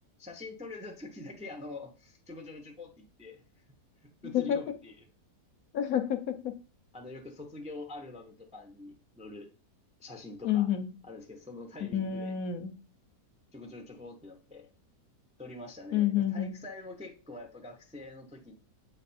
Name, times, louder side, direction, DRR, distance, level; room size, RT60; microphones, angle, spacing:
voice 1, 0.2-3.4 4.0-5.0 6.9-9.5 10.0-10.7 11.0-12.3 13.5-14.7 15.4-18.5, left 2 dB, 5° right, 2 dB, 0.6 m, -45 dB
voice 2, 5.7-6.5 10.4-10.9 11.9-12.7 15.9-16.5, left 10 dB, 65° left, 8 dB, 1.0 m, -29 dB
8.2 x 3.4 x 4.3 m, 0.35 s
omnidirectional pair, 1.8 m